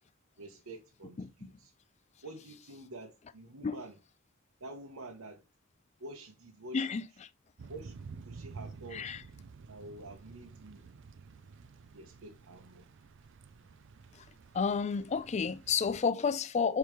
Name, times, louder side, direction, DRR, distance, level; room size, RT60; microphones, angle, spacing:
voice 1, 0.4-1.7 2.2-4.0 4.6-5.4 6.0-6.9 7.7-9.1 9.7-10.9 11.9-12.9, right 2 dB, 90° right, 1.0 m, -48 dB
voice 2, 1.2-1.5 3.6-3.8 6.7-7.0 8.9-9.2 14.1-14.3 14.5-16.8, left 5 dB, 30° left, 0.4 m, -31 dB
Thunder / Rain, 7.6-16.0, right 4 dB, 60° right, 0.4 m, -51 dB
6.9 x 4.7 x 3.1 m
head